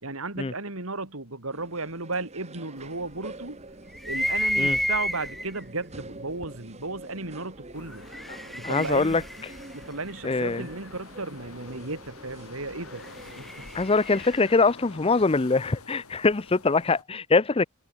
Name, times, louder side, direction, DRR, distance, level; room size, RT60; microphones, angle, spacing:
voice 1, 0.0-3.6 4.1-8.1 8.5-9.2 9.7-13.7, right 3 dB, 70° right, 3.4 m, -35 dB
sound 1, 1.5-13.8, right 2 dB, 30° right, 2.2 m, -46 dB
sound 2, 3.9-5.6 6.4-6.5 7.9-10.7 12.8-14.6, equal, ahead, 2.3 m, -31 dB
sound 3, 7.7-17.0, left 4 dB, 85° left, 3.6 m, -48 dB
voice 2, 8.6-9.2 10.2-10.6 13.7-17.7, left 3 dB, 25° left, 0.6 m, -23 dB
head